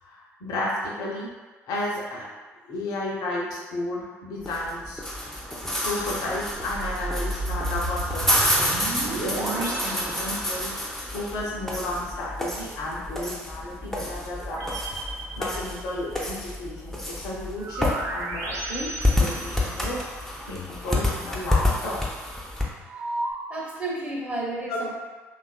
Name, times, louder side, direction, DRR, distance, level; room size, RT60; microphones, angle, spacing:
voice 1, 0.0-1.3 1.7-2.3 2.6-5.0 5.4-10.7 11.1-14.7 15.3-22.0 24.7-24.8, left 1 dB, 60° left, -4 dB, 0.6 m, -33 dB
sound 1, 4.4-22.6, left 1 dB, 5° left, 0.5 m, -29 dB
sound 2, 6.0-11.0 14.4-16.2 17.6-20.2 22.9-23.3, right 2 dB, 50° right, 0.5 m, -33 dB
voice 2, 22.9-23.2 23.5-24.9, right 2 dB, 20° right, -4 dB, 0.9 m, -32 dB
2.8 x 2.3 x 2.2 m, 1.3 s
figure-of-eight pair, 50°, 7 cm